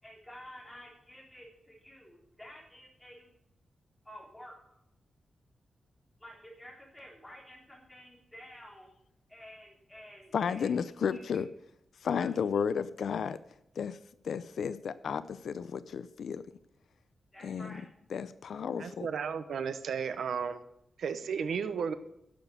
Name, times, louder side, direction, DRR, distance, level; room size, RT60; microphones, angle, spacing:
voice 1, 0.0-3.3 4.1-4.8 6.2-8.9 9.3-10.7 11.1-11.4 12.2-12.3 17.3-17.9, equal, 5° left, -2 dB, 3.9 m, -51 dB
voice 2, 10.3-11.5 12.0-13.4 13.8-14.0 14.2-16.4 17.4-17.8 18.1-19.1, left 7 dB, 65° left, 14 dB, 0.5 m, -33 dB
voice 3, 18.8-20.6 21.0-21.9, right 6 dB, 75° right, 11 dB, 0.9 m, -33 dB
11.0 x 7.1 x 8.1 m, 0.77 s
wide cardioid pair, 170°, 0 cm